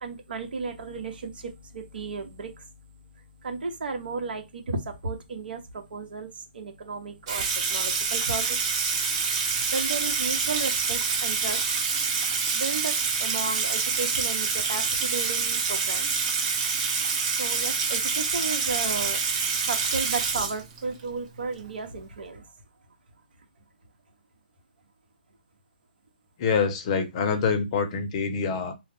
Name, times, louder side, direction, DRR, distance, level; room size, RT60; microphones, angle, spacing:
voice 1, 0.0-2.7 3.4-8.6 9.7-11.6 12.5-16.1 17.3-19.2 19.5-22.5, right 4 dB, 65° right, 0.9 m, -34 dB
Water tap faucet / Sink (filling or washing), 7.3-21.0, right 5 dB, 35° right, 1.0 m, -26 dB
voice 2, 26.4-28.7, left 5 dB, 30° left, 0.6 m, -25 dB
2.3 x 2.0 x 3.4 m
hypercardioid pair, 150°, 5 cm